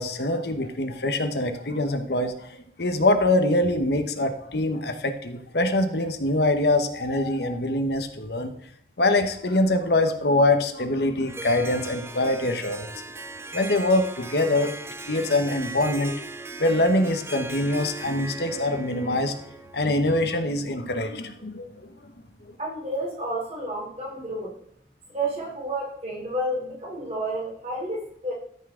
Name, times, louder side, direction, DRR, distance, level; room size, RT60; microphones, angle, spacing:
voice 1, 0.0-8.5 9.0-12.9 13.5-14.7 15.1-16.2 16.6-19.3 19.7-21.7, left 2 dB, 65° left, 7 dB, 1.0 m, -24 dB
Harp, 11.3-20.0, right 3 dB, 15° right, 0.5 m, -39 dB
voice 2, 22.6-24.5 25.1-28.3, right 1 dB, 35° right, -3 dB, 3.4 m, -30 dB
13.0 x 5.6 x 3.7 m, 0.68 s
head